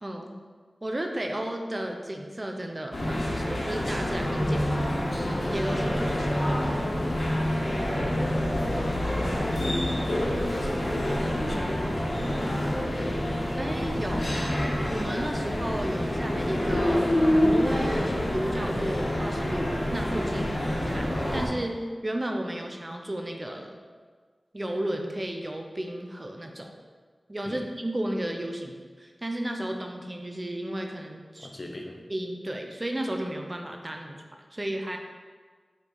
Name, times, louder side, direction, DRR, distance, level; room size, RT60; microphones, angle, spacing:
voice 1, 0.0-0.4 0.8-4.9 5.5-6.8 13.6-14.3 14.9-23.8 24.5-26.7 27.3-31.5 32.1-34.2 34.5-35.0, right 1 dB, 35° right, 3 dB, 0.7 m, -33 dB
sound 1, 2.9-21.5, left 1 dB, 80° left, 1.5 m, -27 dB
voice 2, 7.8-8.3 8.7-10.8 11.3-11.9 27.4-27.6 31.4-32.0, left 1 dB, 50° left, 1 dB, 0.9 m, -40 dB
5.7 x 4.5 x 3.9 m, 1.5 s
wide cardioid pair, 50°, 0 cm